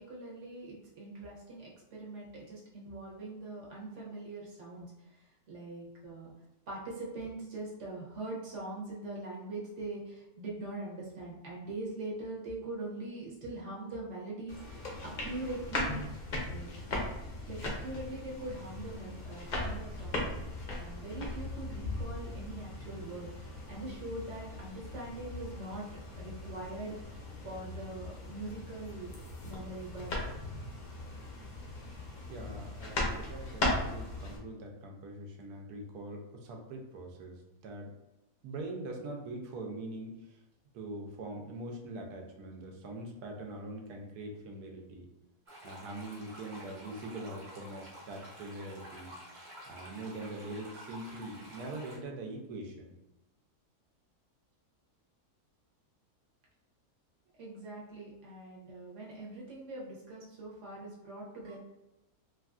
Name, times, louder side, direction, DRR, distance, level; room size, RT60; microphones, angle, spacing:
voice 1, 0.0-6.3 6.7-16.1 16.5-16.7 17.5-20.3 20.7-29.1 29.5-30.1 57.4-61.6, right 2 dB, 60° right, -4 dB, 1.0 m, -42 dB
sound 1, 14.5-34.4, left 1 dB, 60° left, 0.4 m, -38 dB
voice 2, 32.3-37.9 38.4-40.4 40.7-45.1 45.6-49.2 49.7-52.9, right 2 dB, 85° right, 2 dB, 1.1 m, -43 dB
sound 2, 45.5-52.0, equal, 25° right, 1.0 m, -50 dB
3.3 x 2.4 x 2.3 m, 0.98 s
omnidirectional pair, 1.6 m